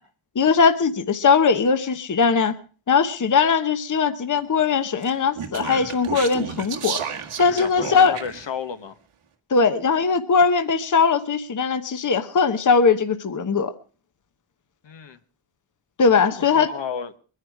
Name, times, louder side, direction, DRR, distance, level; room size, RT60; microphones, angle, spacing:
voice 1, 0.3-2.5 2.9-7.0 7.4-8.1 9.5-13.7 16.0-16.7, left 5 dB, 40° left, 1.0 m, -20 dB
Speech, 5.0-8.5, right 7 dB, 85° right, 1.9 m, -32 dB
voice 2, 7.4-9.0 14.8-15.2 16.3-17.1, left 7 dB, 60° left, 1.3 m, -33 dB
22.5 x 10.5 x 4.7 m
wide cardioid pair, 130°, 49 cm